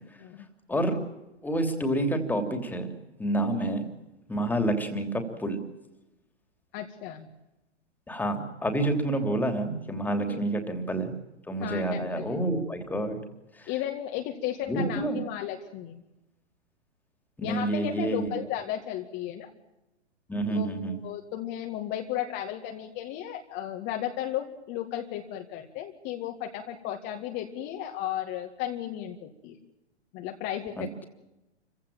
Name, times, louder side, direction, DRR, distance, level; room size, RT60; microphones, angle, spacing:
voice 1, 1.4-2.9 3.2-3.9 4.3-5.6 8.1-11.1 11.5-13.2 13.6-13.7 14.7-15.2 17.4-18.3 20.3-21.0 30.8-31.0, right 1 dB, 5° left, 6 dB, 3.2 m, -28 dB
voice 2, 6.7-7.3 10.3-10.4 11.6-12.2 13.7-16.0 17.4-19.5 20.5-29.6 30.1-31.0, left 11 dB, 30° left, 3 dB, 2.1 m, -34 dB
28.5 x 16.0 x 8.8 m, 0.96 s
figure-of-eight pair, 110°, 34 cm